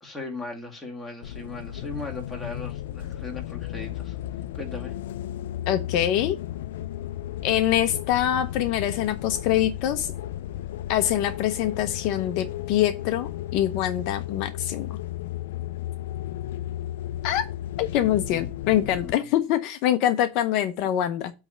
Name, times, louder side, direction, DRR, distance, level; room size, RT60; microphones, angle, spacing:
voice 1, 0.0-4.2 4.5-5.0 18.2-18.5 18.9-19.3, left 2 dB, 10° left, 2.4 m, -38 dB
sound 1, 1.2-19.1, left 13 dB, 85° left, 0.4 m, -34 dB
voice 2, 5.7-6.4 7.4-10.1 10.9-14.9 17.2-17.4 17.8-21.3, left 11 dB, 55° left, 0.8 m, -24 dB
8.2 x 3.3 x 6.5 m
supercardioid pair, 130°, 0 cm